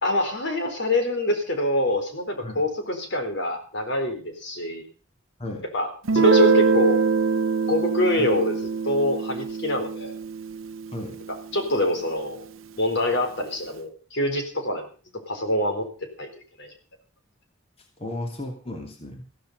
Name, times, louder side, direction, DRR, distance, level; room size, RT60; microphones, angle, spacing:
voice 1, 0.0-4.9 5.7-7.0 7.7-10.2 11.5-12.5 12.8-14.9 15.3-15.9 16.2-16.3 16.6-16.7, left 1 dB, 60° left, 6 dB, 4.1 m, -25 dB
Guitar, 6.1-11.6, right 4 dB, 85° right, 0.7 m, -23 dB
voice 2, 18.0-19.2, left 1 dB, 30° left, 3 dB, 2.9 m, -34 dB
15.5 x 15.0 x 5.4 m, 0.37 s
head